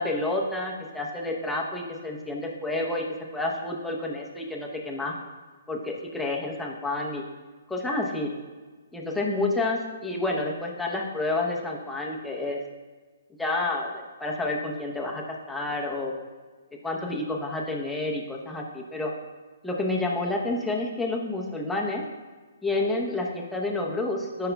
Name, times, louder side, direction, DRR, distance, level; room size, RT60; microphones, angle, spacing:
voice 1, 0.0-3.0 3.3-5.1 5.7-7.2 7.7-8.3 8.9-12.6 13.4-16.1 16.8-19.1 19.6-22.0 22.6-24.5, left 2 dB, 5° left, -1 dB, 0.8 m, -29 dB
12.0 x 5.7 x 2.3 m, 1.4 s
hypercardioid pair, 155°, 0 cm